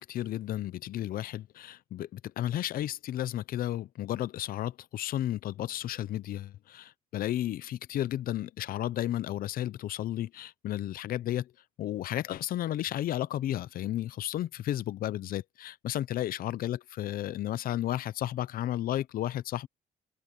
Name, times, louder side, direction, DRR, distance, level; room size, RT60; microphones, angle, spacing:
voice 1, 0.0-11.5 11.8-19.7, left 13 dB, 60° left, 0.7 m, -33 dB
open air
cardioid pair, 110°, 17 cm